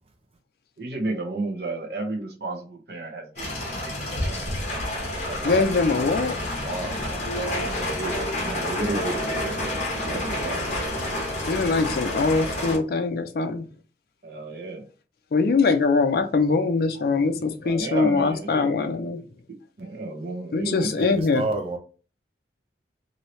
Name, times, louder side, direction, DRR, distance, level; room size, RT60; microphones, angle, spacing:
voice 1, 0.8-3.9 4.2-4.5 5.3-5.6 7.7-9.6 10.0-11.2 14.2-14.8 17.6-19.0 19.8-21.0, right 2 dB, 60° right, 0.8 m, -33 dB
sound 1, 3.4-12.8, left 1 dB, 40° left, 0.9 m, -29 dB
voice 2, 5.4-6.4 11.5-13.7 15.3-19.2 20.5-21.5, left 4 dB, 55° left, 0.4 m, -22 dB
voice 3, 6.6-7.6 20.9-21.8, right 2 dB, 30° right, 0.5 m, -31 dB
2.9 x 2.7 x 3.1 m
head